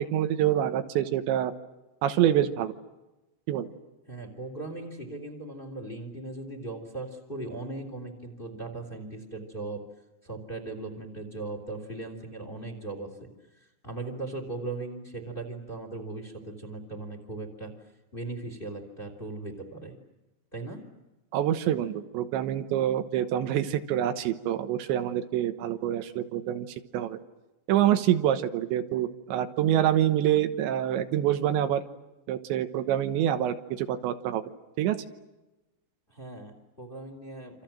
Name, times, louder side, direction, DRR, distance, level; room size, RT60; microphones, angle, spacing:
voice 1, 0.0-1.5 2.0-2.7 3.5-3.7 21.3-26.7 26.9-27.2 27.7-31.8 32.3-34.4 34.8-35.0, right 11 dB, 80° right, 9 dB, 3.4 m, -26 dB
voice 2, 4.1-9.8 10.2-13.3 13.6-17.7 18.1-20.0 20.5-20.8 36.1-37.6, right 2 dB, 15° left, 5 dB, 3.2 m, -38 dB
28.0 x 27.0 x 7.6 m, 1.0 s
omnidirectional pair, 5.2 m